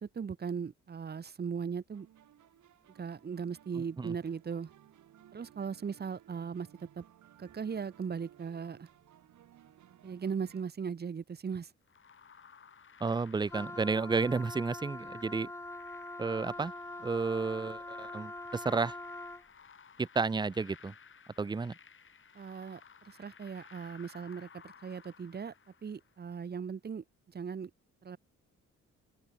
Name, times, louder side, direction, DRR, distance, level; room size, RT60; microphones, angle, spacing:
voice 1, 0.0-2.1 2.9-4.7 5.3-7.0 7.4-8.9 10.0-11.7 22.3-25.5 25.8-27.7 28.0-28.2, right 6 dB, 35° right, 1.2 m, -38 dB
sound 1, 1.9-10.6, right 11 dB, 70° right, 7.1 m, -60 dB
sound 2, 11.9-26.2, left 6 dB, 40° left, 3.8 m, -58 dB
voice 2, 13.0-15.5 16.2-16.7 17.0-18.9 20.0-20.9 21.4-21.7, right 4 dB, 15° right, 0.5 m, -32 dB
Wind instrument woodwind instrument, 13.5-19.5, left 2 dB, 10° left, 1.1 m, -43 dB
open air
cardioid pair, 90°, 30 cm